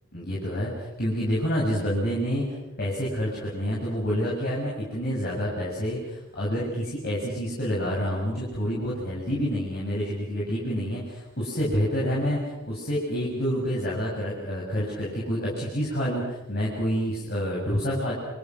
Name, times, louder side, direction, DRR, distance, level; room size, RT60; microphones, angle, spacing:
voice 1, 0.1-18.1, equal, 50° left, -5 dB, 7.3 m, -28 dB
29.5 x 28.5 x 6.3 m, 1.0 s
head